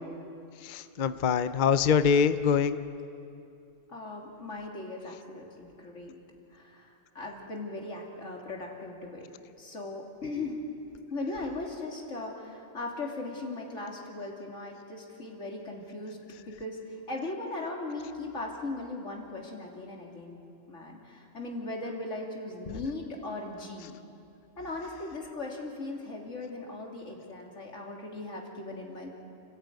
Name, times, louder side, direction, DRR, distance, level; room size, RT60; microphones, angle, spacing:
voice 1, 0.6-2.8, left 6 dB, 50° left, 12 dB, 0.7 m, -24 dB
voice 2, 3.9-6.2 6.5-9.3 9.6-10.6 11.1-20.4 20.7-23.9 24.6-29.1, left 2 dB, 90° left, 0 dB, 3.3 m, -38 dB
29.5 x 14.5 x 9.4 m, 2.6 s
omnidirectional pair, 1.2 m